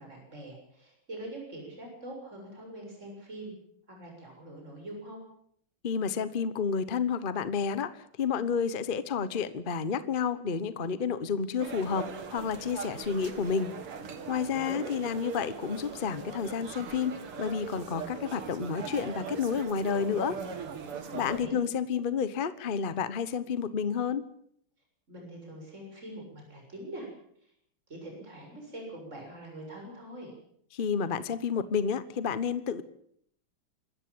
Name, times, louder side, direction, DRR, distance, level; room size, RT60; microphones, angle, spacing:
voice 1, 0.0-3.5 3.9-5.2 14.5-14.9 21.1-21.6 25.1-27.1 27.9-30.3, right 1 dB, 30° right, 1 dB, 7.4 m, -43 dB
voice 2, 5.8-13.7 14.3-20.4 21.1-24.3 30.7-32.8, left 6 dB, 35° left, 14 dB, 0.8 m, -30 dB
sound 1, 11.6-21.5, right 6 dB, 85° right, 2.9 m, -40 dB
25.5 x 14.0 x 8.7 m, 0.67 s
omnidirectional pair, 2.4 m